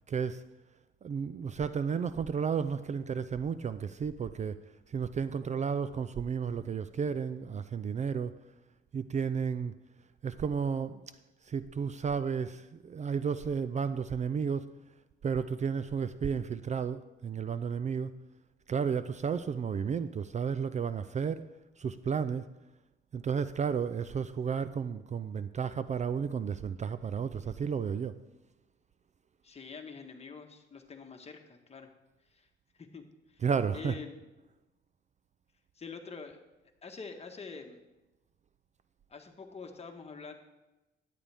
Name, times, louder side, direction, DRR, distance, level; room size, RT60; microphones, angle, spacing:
voice 1, 0.1-0.4 1.0-4.6 4.9-8.3 8.9-9.7 10.2-11.0 11.5-14.7 15.2-18.1 18.7-21.5 21.8-22.5 23.1-28.2 33.4-33.9, right 6 dB, 35° right, 13 dB, 0.4 m, -32 dB
voice 2, 29.4-31.9 32.3-32.5 32.7-33.4 33.7-34.2 35.7-36.4 36.8-37.8 39.1-40.3, left 5 dB, 30° left, 4 dB, 1.4 m, -46 dB
11.0 x 9.9 x 3.5 m, 1.0 s
cardioid pair, 90°, 20 cm